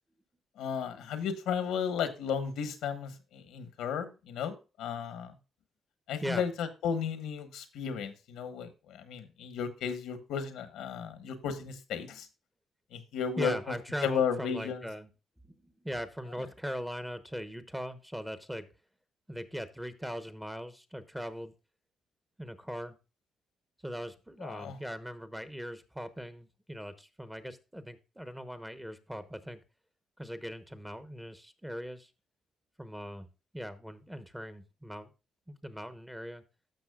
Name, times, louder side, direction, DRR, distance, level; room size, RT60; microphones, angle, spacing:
voice 1, 0.6-5.3 6.1-12.3 12.9-13.5 14.0-14.8 24.4-24.8, left 7 dB, 85° left, 10 dB, 1.1 m, -34 dB
voice 2, 13.4-15.1 15.4-18.7 19.3-21.5 22.4-23.0 23.8-29.6 30.2-32.1 32.8-33.3 33.5-35.1 35.5-36.4, equal, 5° right, 11 dB, 0.9 m, -40 dB
13.0 x 5.9 x 2.3 m, 0.29 s
cardioid pair, 90°, 0 cm